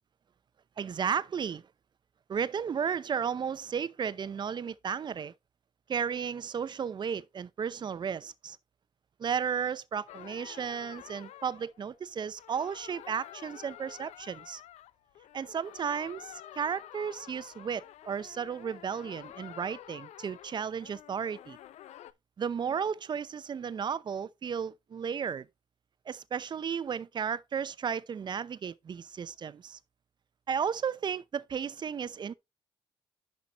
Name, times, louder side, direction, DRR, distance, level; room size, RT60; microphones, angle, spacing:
voice 1, 0.8-1.6 2.3-5.3 5.9-8.6 9.2-14.6 15.3-21.6 22.4-25.5 26.1-29.8 30.5-32.3, right 7 dB, 40° right, 0.7 m, -34 dB
sound 1, 10.1-22.1, left 12 dB, 85° left, 0.6 m, -49 dB
10.5 x 5.8 x 3.0 m
cardioid pair, 110°, 11 cm